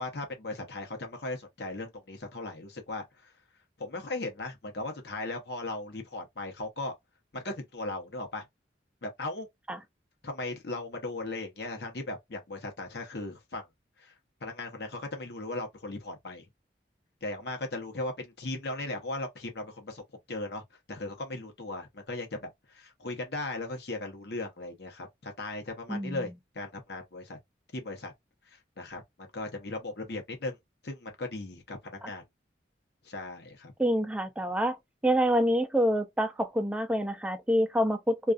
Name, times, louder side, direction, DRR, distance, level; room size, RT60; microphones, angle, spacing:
voice 1, 0.0-3.3 3.8-6.9 7.3-8.4 9.0-9.5 10.2-13.7 14.0-14.1 14.4-16.4 17.2-20.0 20.3-20.6 20.9-27.4 27.7-28.1 28.5-30.6 30.8-32.2 33.0-33.7, left 2 dB, 60° left, 0.8 m, -37 dB
voice 2, 25.9-26.3 33.8-34.8 35.0-38.3, equal, 5° right, 0.3 m, -27 dB
2.4 x 2.3 x 2.4 m
head